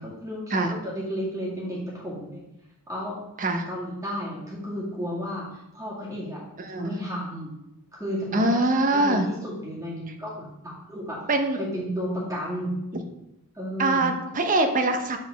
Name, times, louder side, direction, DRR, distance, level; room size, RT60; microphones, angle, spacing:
voice 1, 0.0-2.4 2.9-3.2 3.6-6.4 6.8-7.5 7.9-8.6 8.9-11.2 11.6-12.7 13.5-14.1, equal, 15° right, -7 dB, 2.2 m, -32 dB
voice 2, 6.6-6.9 8.3-9.3 11.3-11.6 12.9-13.0 13.8-15.2, right 2 dB, 40° right, 5 dB, 0.8 m, -23 dB
8.7 x 4.2 x 4.1 m, 0.87 s
head